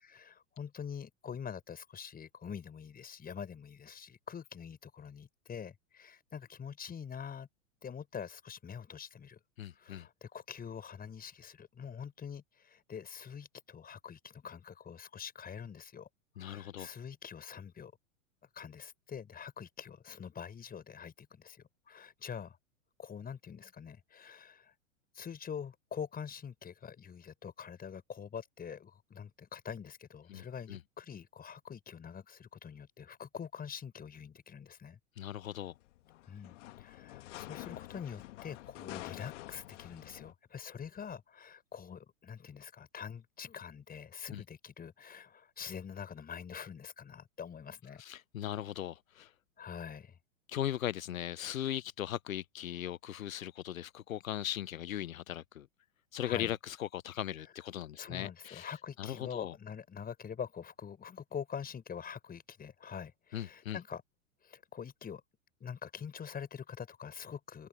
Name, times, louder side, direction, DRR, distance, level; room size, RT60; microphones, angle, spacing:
voice 1, 0.1-7.5 7.8-9.4 9.7-16.1 16.4-17.9 18.5-22.6 23.0-24.7 25.1-35.0 36.3-48.0 49.6-50.2 56.2-56.5 58.0-64.0 64.4-65.2 65.6-67.7, left 7 dB, 20° left, 6.3 m, -45 dB
voice 2, 9.6-10.1 16.4-16.9 30.3-30.8 35.2-35.7 44.3-44.4 48.0-49.3 50.5-55.7 56.1-59.5 63.3-63.8, left 11 dB, 85° left, 0.6 m, -38 dB
sound 1, 35.5-40.3, left 17 dB, 60° left, 1.6 m, -48 dB
hypercardioid pair, 100°, 40 cm